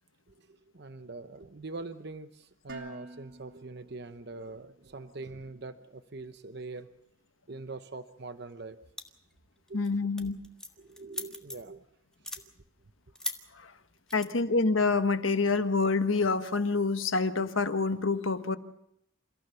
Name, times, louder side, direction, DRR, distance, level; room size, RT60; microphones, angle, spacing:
voice 1, 0.3-6.9 7.5-8.8 9.7-9.9 10.8-11.9, right 3 dB, 55° right, 10 dB, 0.9 m, -43 dB
Dishes pots and pans, 2.7-4.8, right 3 dB, 85° right, 3.6 m, -48 dB
sound 1, 9.0-9.3 9.7-9.9 10.2-11.8 12.1-12.4 13.2-13.4 14.1-14.3, left 1 dB, 5° left, 1.6 m, -38 dB
voice 2, 9.7-10.4 13.5-13.7 14.1-18.6, left 3 dB, 80° left, 10 dB, 1.3 m, -27 dB
29.0 x 15.5 x 6.9 m, 0.76 s
head